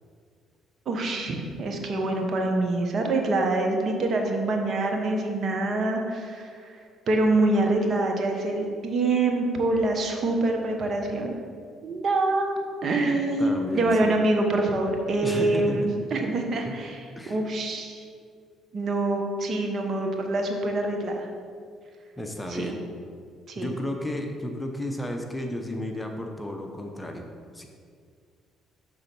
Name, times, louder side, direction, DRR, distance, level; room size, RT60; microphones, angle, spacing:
voice 1, 0.9-6.7 7.1-11.3 11.8-12.5 12.8-18.0 18.7-21.3 22.5-22.7 23.5-23.7, right 2 dB, 50° right, 3 dB, 1.0 m, -25 dB
voice 2, 13.4-14.2 15.2-15.9 17.2-17.4 22.2-22.8 23.6-27.3 27.5-27.7, left 1 dB, 10° left, 3 dB, 0.8 m, -32 dB
6.6 x 3.8 x 6.0 m, 2.1 s
supercardioid pair, 70°, 0 cm